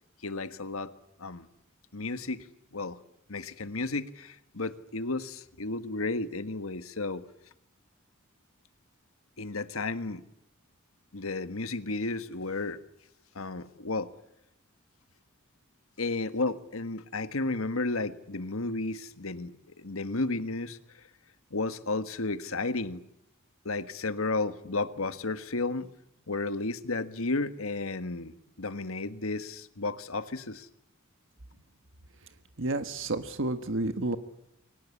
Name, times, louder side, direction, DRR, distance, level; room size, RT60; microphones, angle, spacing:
voice 1, 0.2-0.9 1.2-1.5 1.9-2.5 2.7-3.0 3.3-7.2 9.4-10.2 11.1-12.8 13.3-14.1 16.0-21.1 21.5-23.0 23.6-25.9 26.3-30.7, left 3 dB, 75° left, 11 dB, 1.6 m, -33 dB
voice 2, 32.6-34.2, right 2 dB, 60° right, 9 dB, 1.5 m, -30 dB
29.0 x 23.5 x 8.5 m, 0.81 s
head